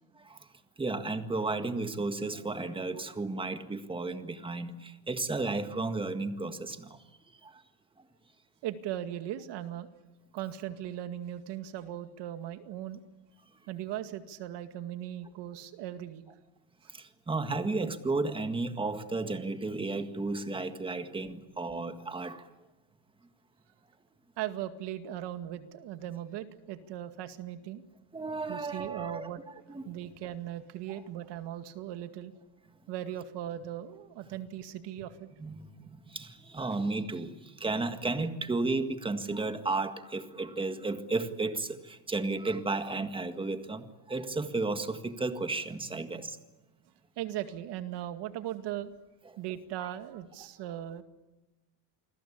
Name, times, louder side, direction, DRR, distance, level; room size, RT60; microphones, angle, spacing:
voice 1, 0.8-7.0 7.4-7.6 16.9-22.5 28.1-29.3 29.7-29.9 35.4-46.4 49.8-49.9, right 3 dB, 10° right, 8 dB, 1.8 m, -33 dB
voice 2, 8.6-9.9 10.3-13.0 13.7-16.2 24.4-27.8 28.5-29.4 29.9-32.3 32.9-35.3 47.2-48.9 49.4-51.0, right 12 dB, 65° right, 9 dB, 2.2 m, -38 dB
29.0 x 21.5 x 8.6 m, 1.1 s
cardioid pair, 155°, 45 cm